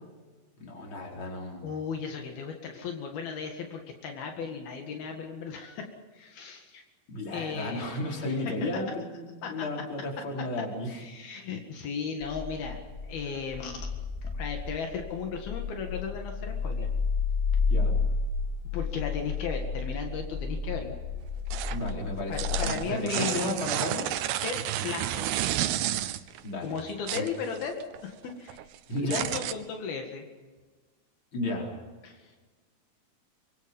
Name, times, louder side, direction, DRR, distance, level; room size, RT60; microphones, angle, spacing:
voice 1, 0.6-1.6 7.1-11.0 17.7-17.9 21.7-24.1 26.4-26.7 27.1-27.2 28.9-29.2 31.3-31.7, left 1 dB, 30° left, 0 dB, 5.0 m, -33 dB
voice 2, 1.6-6.8 7.3-8.0 8.2-8.5 9.4-9.7 10.9-13.9 14.2-16.9 18.7-21.0 22.3-23.6 24.4-25.3 26.6-28.7 29.0-30.3 32.0-32.4, left 5 dB, 75° left, 3 dB, 3.9 m, -36 dB
sound 1, 12.3-22.7, left 4 dB, 50° left, 0.3 m, -31 dB
sound 2, 21.5-21.9 22.2-26.4 26.8-28.0 28.3-29.5, right 13 dB, 85° right, 2.8 m, -31 dB
25.5 x 22.5 x 5.4 m, 1.3 s
omnidirectional pair, 4.4 m